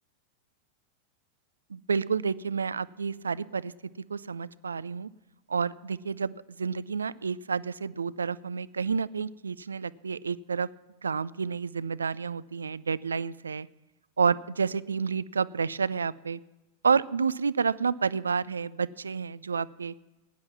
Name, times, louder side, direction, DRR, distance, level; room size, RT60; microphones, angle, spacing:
voice 1, 1.7-3.7 4.1-5.1 5.5-10.7 11.0-13.7 14.2-16.4 16.8-19.9, right 5 dB, 75° right, 19 dB, 0.4 m, -29 dB
16.5 x 10.5 x 5.8 m, 1.1 s
figure-of-eight pair, 90°, 0 cm